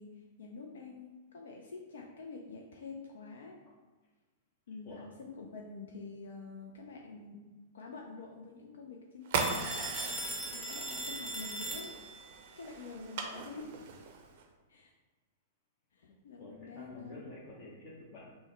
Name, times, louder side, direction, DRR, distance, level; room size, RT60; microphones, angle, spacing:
voice 1, 0.0-3.6 4.7-7.5 7.7-9.8 10.5-12.1 12.6-13.7 14.7-14.9 15.9-17.3, left 4 dB, 65° left, 1 dB, 0.4 m, -47 dB
sound 1, 9.2-14.4, right 5 dB, 55° right, 0.5 m, -39 dB
Telephone, 9.3-12.3, right 1 dB, 10° left, 0.8 m, -39 dB
voice 2, 16.1-18.3, left 2 dB, 40° left, -6 dB, 0.7 m, -49 dB
5.3 x 2.1 x 3.2 m, 1.3 s
figure-of-eight pair, 105°, 0 cm